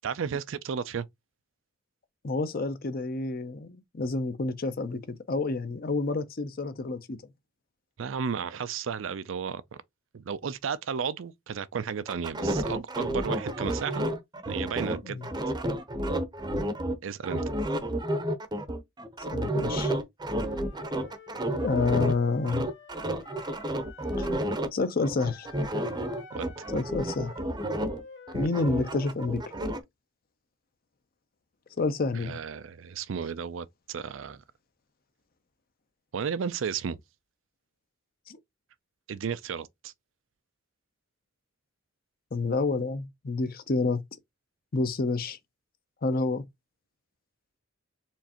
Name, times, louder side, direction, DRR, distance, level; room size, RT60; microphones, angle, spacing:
voice 1, 0.0-1.1 8.0-9.6 10.1-14.1 14.5-15.2 17.0-17.4 26.3-26.5 32.1-34.4 36.1-37.0 39.1-39.9, right 6 dB, 75° right, 0.4 m, -33 dB
voice 2, 2.2-7.2 15.0-15.3 19.3-20.0 21.6-22.7 24.2-24.3 24.7-25.5 26.7-27.3 28.3-29.5 31.8-32.4 38.3-38.4 42.3-44.0 44.7-45.4 46.0-46.5, left 3 dB, 50° left, 0.6 m, -29 dB
sound 1, 12.1-16.9 17.2-22.2 22.4-24.7 25.0-28.0 28.3-29.8, right 1 dB, 20° right, 0.7 m, -31 dB
Wind instrument woodwind instrument, 20.2-24.5 25.3-29.2, left 4 dB, 70° left, 1.7 m, -50 dB
4.5 x 3.2 x 2.9 m
head